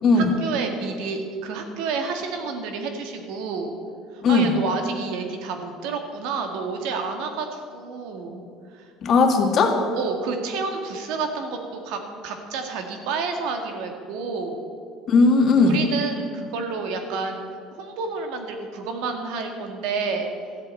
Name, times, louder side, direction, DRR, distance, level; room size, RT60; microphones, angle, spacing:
voice 1, 0.1-3.8 4.1-8.4 8.7-8.9 9.9-14.6 15.6-17.5 17.7-20.3, right 4 dB, 80° right, 4 dB, 1.9 m, -30 dB
voice 2, 4.2-4.6 9.0-9.8 15.1-15.8, left 3 dB, 45° left, 4 dB, 1.7 m, -17 dB
14.0 x 7.8 x 8.3 m, 2.2 s
cardioid pair, 125°, 0 cm